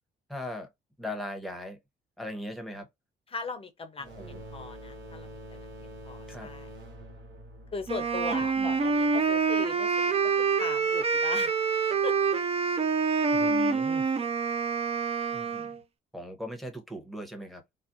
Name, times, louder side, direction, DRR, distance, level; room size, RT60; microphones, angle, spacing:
voice 1, 0.3-0.7 1.0-1.8 2.2-2.9 4.1-4.4 6.3-6.5 8.6-8.7 13.3-14.1 15.3-15.7 16.1-17.7, left 1 dB, ahead, 0.8 m, -39 dB
voice 2, 3.3-6.7 7.7-11.5 12.0-12.2, left 4 dB, 30° left, 0.6 m, -39 dB
sound 1, 4.0-9.4, equal, 80° right, 1.0 m, -46 dB
Wind instrument woodwind instrument, 7.9-15.8, right 5 dB, 30° right, 0.4 m, -26 dB
2.5 x 2.0 x 2.5 m
cardioid pair, 90°, 20 cm